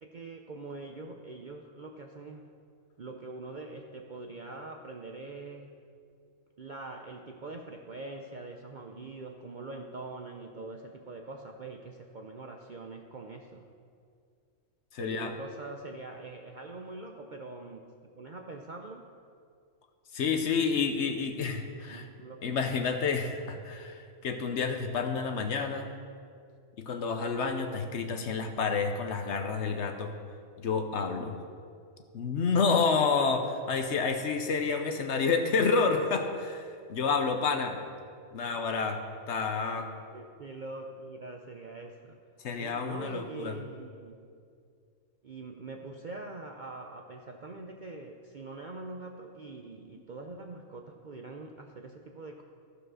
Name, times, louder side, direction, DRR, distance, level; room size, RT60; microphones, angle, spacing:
voice 1, 0.0-2.5 3.0-5.7 6.6-13.7 15.0-19.1 21.9-22.6 38.5-38.6 39.7-42.2 42.6-44.3 45.2-52.4, right 3 dB, 55° right, 3 dB, 0.5 m, -43 dB
voice 2, 14.9-15.3 20.1-22.1 22.4-25.9 26.8-30.1 30.6-31.4 32.1-37.8 38.3-39.0 39.3-39.9 42.4-43.5, left 5 dB, 60° left, 6 dB, 1.0 m, -29 dB
14.5 x 5.0 x 6.3 m, 2.3 s
omnidirectional pair, 1.4 m